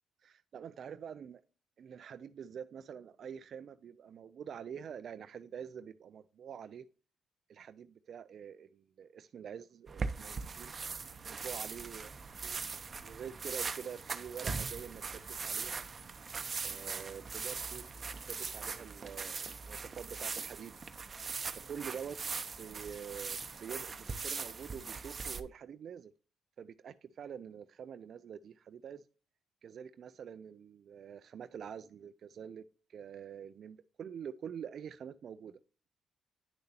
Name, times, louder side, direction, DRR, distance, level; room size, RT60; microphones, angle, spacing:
voice 1, 0.2-1.4 1.8-6.9 7.5-10.7 11.2-12.1 12.4-12.6 13.0-15.9 16.6-17.8 18.3-20.8 21.5-22.2 22.5-26.1 26.6-29.0 29.6-35.6, right 8 dB, 60° right, 0.4 m, -46 dB
sound 1, 9.9-25.4, right 5 dB, 35° right, 0.7 m, -40 dB
9.8 x 6.6 x 2.8 m
cardioid pair, 90°, 0 cm